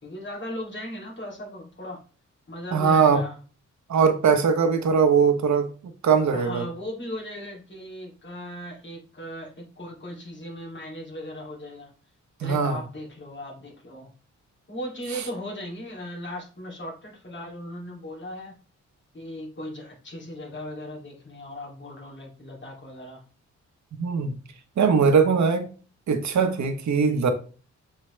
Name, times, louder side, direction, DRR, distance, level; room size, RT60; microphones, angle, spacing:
voice 1, 0.0-2.0 2.5-3.3 6.3-11.9 12.4-14.1 14.7-18.6 19.1-23.2, left 1 dB, 40° left, 2.7 m, -37 dB
voice 2, 2.7-3.2 3.9-6.7 12.4-12.8 23.9-24.4 24.8-25.7 26.1-27.3, right 6 dB, 70° right, 1.1 m, -21 dB
7.5 x 4.5 x 3.3 m
wide cardioid pair, 145°, 30 cm